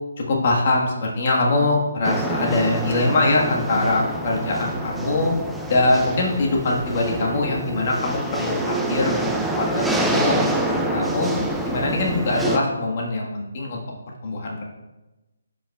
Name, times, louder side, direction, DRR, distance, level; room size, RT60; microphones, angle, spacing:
voice 1, 0.3-5.3 5.7-9.3 9.6-11.3 11.6-13.8 14.2-14.6, left 2 dB, 45° left, -1 dB, 1.4 m, -22 dB
sound 1, 2.0-12.6, right 1 dB, 5° right, 0.5 m, -26 dB
11.5 x 5.3 x 2.3 m, 1.0 s
hypercardioid pair, 155°, 0 cm